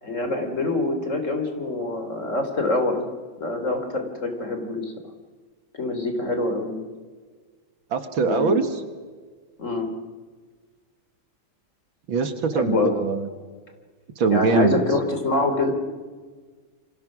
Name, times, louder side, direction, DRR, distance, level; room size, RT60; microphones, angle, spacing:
voice 1, 0.0-3.1 3.4-4.9 5.8-6.9 8.2-8.6 9.6-9.9 12.5-12.9 14.3-15.7, left 2 dB, 35° left, 5 dB, 3.3 m, -25 dB
voice 2, 7.9-8.7 12.1-13.3 14.2-14.8, right 5 dB, 70° right, 8 dB, 2.5 m, -22 dB
28.5 x 25.5 x 6.2 m, 1.5 s
omnidirectional pair, 2.3 m